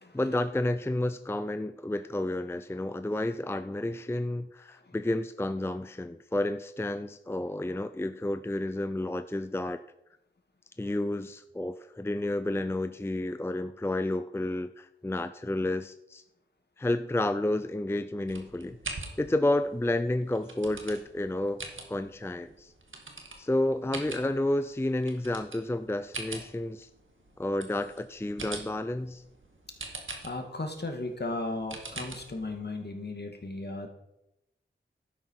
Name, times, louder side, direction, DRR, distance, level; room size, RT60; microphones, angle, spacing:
voice 1, 0.1-9.8 10.8-16.2 16.8-21.6 21.9-22.7 23.4-26.9 27.4-29.2, left 1 dB, 10° left, 11 dB, 0.5 m, -31 dB
sound 1, 18.3-32.6, right 3 dB, 75° right, 2.0 m, -44 dB
voice 2, 30.2-33.9, left 2 dB, 55° left, 4 dB, 2.1 m, -36 dB
12.0 x 9.5 x 4.7 m, 0.88 s
wide cardioid pair, 50°, 21 cm